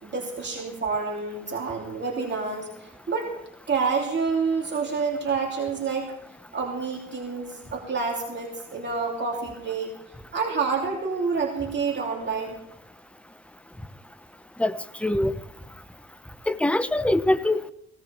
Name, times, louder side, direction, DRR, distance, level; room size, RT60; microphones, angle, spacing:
voice 1, 0.0-3.4 3.7-6.1 6.5-9.9 10.3-12.6, right 5 dB, 35° right, -2 dB, 3.2 m, -28 dB
voice 2, 14.6-15.3 16.5-17.7, left 1 dB, 5° left, 13 dB, 0.7 m, -23 dB
17.5 x 17.5 x 3.5 m, 0.80 s
cardioid pair, 90°, 30 cm